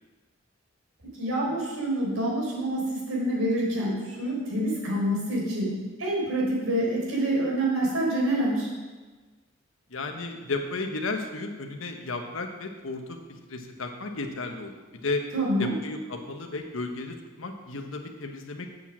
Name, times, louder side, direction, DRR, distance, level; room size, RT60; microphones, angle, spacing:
voice 1, 1.1-8.7 15.3-15.7, right 1 dB, 85° right, -3 dB, 4.1 m, -27 dB
voice 2, 9.9-15.2 15.6-18.7, left 3 dB, 80° left, 4 dB, 1.1 m, -34 dB
7.9 x 7.3 x 7.4 m, 1.3 s
head